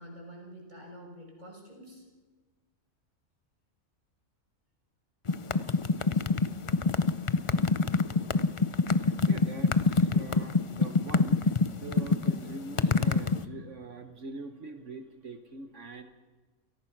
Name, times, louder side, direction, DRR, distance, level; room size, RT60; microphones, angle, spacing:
voice 1, 0.0-2.0, equal, 30° right, -1 dB, 6.6 m, -47 dB
sound 1, 5.3-13.4, left 4 dB, 35° left, 0.5 m, -25 dB
voice 2, 8.9-16.0, right 3 dB, 60° right, 7 dB, 1.5 m, -43 dB
29.0 x 18.0 x 6.0 m, 1.4 s
omnidirectional pair, 1.5 m